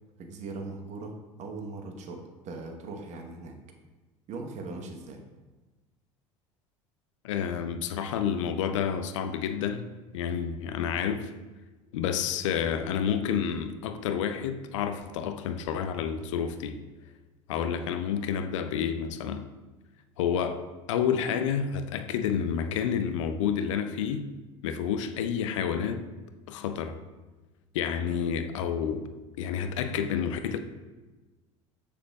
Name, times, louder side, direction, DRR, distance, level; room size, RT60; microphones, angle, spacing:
voice 1, 0.2-3.6 4.3-5.2, right 3 dB, 45° right, 1.1 m, -40 dB
voice 2, 7.2-9.9 10.1-11.3 11.9-16.8 17.5-19.5 20.2-24.3 24.6-26.1 26.5-27.0 27.7-29.1 29.4-30.6, left 8 dB, 70° left, 0.5 m, -29 dB
7.1 x 6.7 x 2.3 m
figure-of-eight pair, 70°, 16 cm